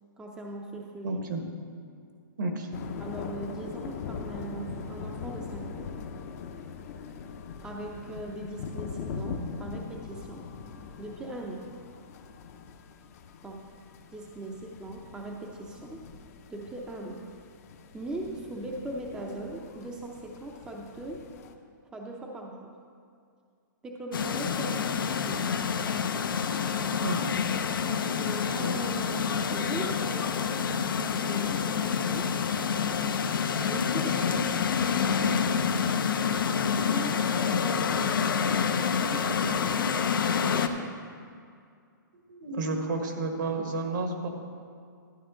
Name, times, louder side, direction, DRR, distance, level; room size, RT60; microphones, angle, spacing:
voice 1, 0.2-1.2 3.0-5.9 7.6-10.4 11.0-11.7 13.4-13.7 14.1-16.0 16.5-17.3 17.9-21.2 21.9-22.7 23.8-25.5 27.9-32.3 33.6-34.5 36.8-40.0 40.4-40.9, right 2 dB, 10° right, 0 dB, 0.6 m, -40 dB
voice 2, 1.0-1.4 2.4-2.7 27.0-27.2 42.3-44.3, right 2 dB, 65° right, 3 dB, 1.5 m, -31 dB
sound 1, 2.7-21.5, left 5 dB, 45° left, 0.7 m, -41 dB
sound 2, 24.1-40.7, left 6 dB, 85° left, 0.7 m, -27 dB
12.0 x 9.1 x 3.8 m, 2.3 s
hypercardioid pair, 155°, 11 cm